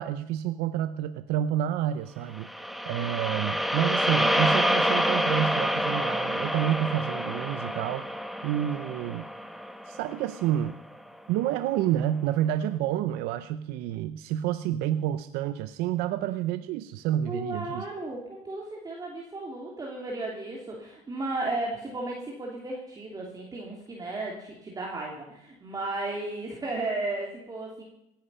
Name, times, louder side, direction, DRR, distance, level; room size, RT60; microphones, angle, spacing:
voice 1, 0.0-2.5 2.9-8.1 8.4-9.3 9.9-10.8 11.3-17.8, right 11 dB, 80° right, 11 dB, 0.7 m, -29 dB
sound 1, 2.4-10.7, equal, ahead, 1.1 m, -28 dB
voice 2, 17.3-27.8, right 2 dB, 25° right, -2 dB, 2.9 m, -34 dB
17.5 x 10.5 x 5.6 m, 0.86 s
cardioid pair, 115°, 16 cm